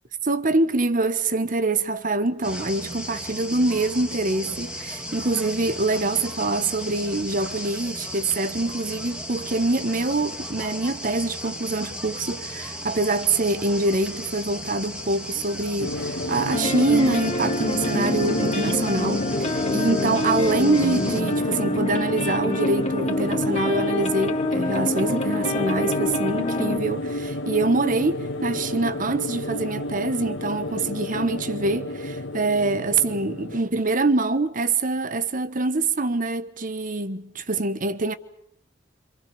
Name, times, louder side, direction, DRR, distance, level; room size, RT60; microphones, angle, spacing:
voice 1, 0.2-38.1, right 2 dB, 45° right, 1.2 m, -25 dB
sound 1, 2.4-21.2, equal, 5° right, 2.6 m, -35 dB
sound 2, 15.8-33.6, left 1 dB, 80° left, 1.6 m, -30 dB
sound 3, 16.5-26.8, left 2 dB, 35° left, 2.7 m, -27 dB
27.0 x 27.0 x 7.1 m
head